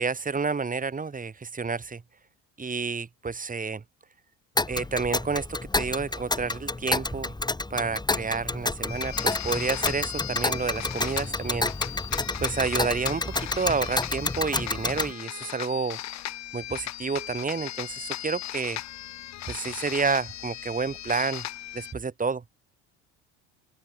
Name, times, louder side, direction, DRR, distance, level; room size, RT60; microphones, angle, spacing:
voice 1, 0.0-2.0 2.6-3.8 4.7-7.3 7.7-11.7 12.4-16.0 16.5-18.8 19.5-21.5 21.7-22.4, right 4 dB, 25° right, 5.9 m, -30 dB
Tick, 4.6-15.1, left 2 dB, 10° left, 5.5 m, -29 dB
sound 1, 8.9-21.9, left 13 dB, 55° left, 4.6 m, -37 dB
open air
hypercardioid pair, 75°, 33 cm